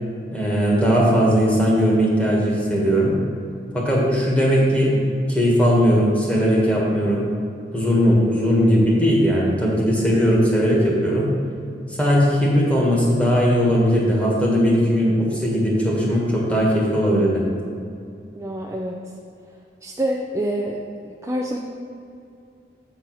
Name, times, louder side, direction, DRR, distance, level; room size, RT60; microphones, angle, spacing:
voice 1, 0.3-3.1 3.7-5.0 5.3-7.2 7.7-11.3 12.0-17.4, equal, 10° left, -4 dB, 1.5 m, -18 dB
voice 2, 18.3-19.1 19.8-20.8 21.0-21.6, right 1 dB, 15° right, -2 dB, 0.4 m, -26 dB
7.8 x 4.5 x 6.1 m, 2.5 s
head